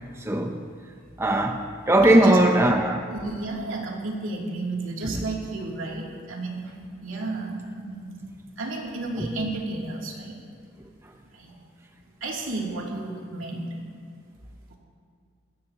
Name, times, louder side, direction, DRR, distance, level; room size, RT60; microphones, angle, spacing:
voice 1, 0.2-0.7 1.2-3.1 5.1-5.2 9.2-9.3, right 1 dB, 15° right, 0.6 m, -20 dB
voice 2, 2.0-2.4 3.1-6.7 7.0-8.1 8.6-10.4 11.3-11.6 12.2-13.7 14.7-14.8, right 2 dB, 90° right, 2.9 m, -32 dB
21.0 x 16.5 x 3.0 m
head